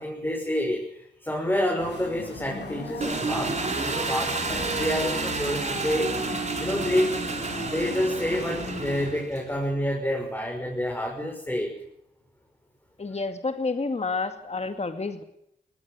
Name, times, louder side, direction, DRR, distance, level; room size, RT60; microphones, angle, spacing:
voice 1, 0.0-3.6 3.8-6.1 6.6-7.1 7.6-11.7, equal, 10° left, 0 dB, 6.5 m, -28 dB
sound 1, 1.8-9.1, left 3 dB, 85° left, 8.0 m, -39 dB
Engine, 3.0-9.5, right 3 dB, 40° right, 4.1 m, -30 dB
voice 2, 13.0-15.2, left 3 dB, 40° left, 8 dB, 2.2 m, -29 dB
18.5 x 18.0 x 9.4 m, 0.75 s
cardioid pair, 65°, 18 cm